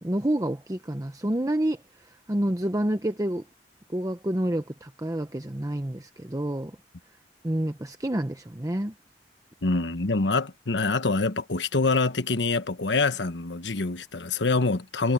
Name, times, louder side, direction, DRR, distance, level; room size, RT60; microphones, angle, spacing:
voice 1, 0.0-3.4 3.9-6.8 7.4-8.9, right 1 dB, 20° right, 0.9 m, -28 dB
voice 2, 9.6-15.1, left 3 dB, 80° left, 1.2 m, -25 dB
head